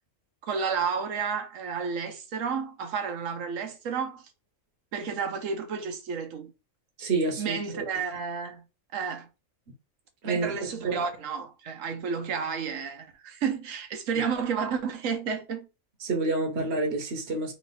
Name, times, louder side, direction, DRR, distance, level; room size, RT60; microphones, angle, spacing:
voice 1, 0.5-4.2 4.9-6.5 7.4-8.7 8.9-9.3 10.2-15.7, right 6 dB, 75° right, 1.2 m, -31 dB
voice 2, 7.0-7.8 10.2-10.5 10.8-11.0 16.0-17.5, right 3 dB, 55° right, 1.2 m, -28 dB
3.2 x 3.0 x 4.0 m
omnidirectional pair, 1.4 m